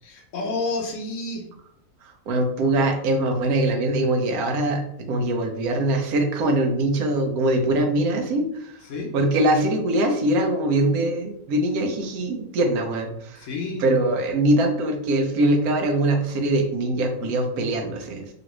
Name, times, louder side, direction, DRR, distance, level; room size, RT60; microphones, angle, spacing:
voice 1, 0.0-1.4 8.8-9.1 13.3-13.8, left 3 dB, 70° left, 1 dB, 0.9 m, -30 dB
voice 2, 2.3-4.8 5.1-8.8 9.1-13.5 13.8-18.3, right 1 dB, 85° right, 3 dB, 1.1 m, -22 dB
3.0 x 2.5 x 2.9 m, 0.75 s
omnidirectional pair, 1.5 m